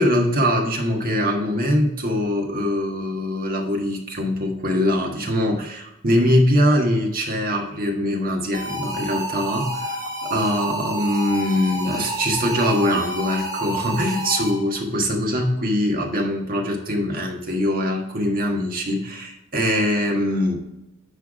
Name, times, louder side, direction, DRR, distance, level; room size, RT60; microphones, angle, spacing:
voice 1, 0.0-20.6, equal, 40° right, 1 dB, 1.4 m, -22 dB
sound 1, 8.5-14.8, right 1 dB, 15° right, 1.3 m, -30 dB
10.0 x 3.5 x 4.9 m, 0.89 s
head